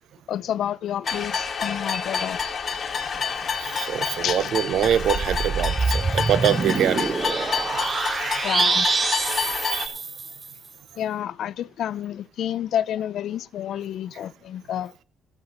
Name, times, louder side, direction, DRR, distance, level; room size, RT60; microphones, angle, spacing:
voice 1, 0.3-2.4 4.2-4.5 8.4-8.9 11.0-14.9, left 10 dB, 75° left, 0.5 m, -29 dB
sound 1, 1.1-9.9, left 6 dB, 45° left, 2.1 m, -28 dB
voice 2, 3.6-8.4 9.7-9.9, right 10 dB, 75° right, 0.8 m, -25 dB
sound 2, 4.8-10.5, right 4 dB, 35° right, 0.4 m, -26 dB
13.0 x 8.1 x 5.5 m
cardioid pair, 90°, 0 cm